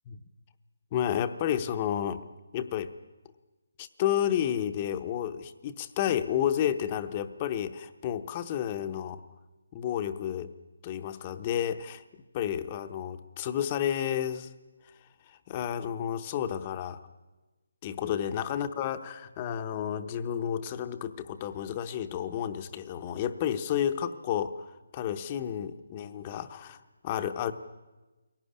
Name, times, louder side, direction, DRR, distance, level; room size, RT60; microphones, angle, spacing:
voice 1, 0.9-2.3 2.5-2.9 3.8-9.2 9.7-10.5 10.8-12.0 12.3-14.5 15.2-17.0 17.8-24.7 24.9-27.5, left 10 dB, 20° left, 10 dB, 0.7 m, -31 dB
22.5 x 17.5 x 9.9 m, 1.2 s
hypercardioid pair, 175°, 0 cm